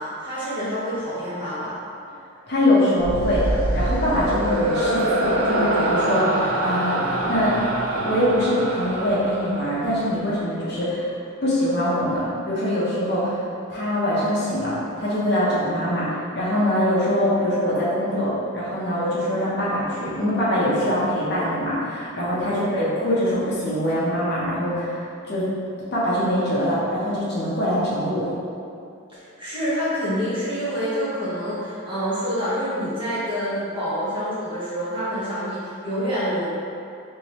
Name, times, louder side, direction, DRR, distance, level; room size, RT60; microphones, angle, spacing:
voice 1, 0.0-1.7 22.5-22.6 29.1-36.5, equal, 25° right, -11 dB, 1.0 m, -27 dB
voice 2, 2.5-7.6 7.9-11.1 11.4-13.4 13.7-25.0 25.3-25.5 25.9-28.2, equal, 50° left, -8 dB, 0.8 m, -23 dB
sound 1, 3.0-10.4, right 1 dB, 85° right, 0.5 m, -25 dB
3.3 x 3.1 x 2.9 m, 2.5 s
head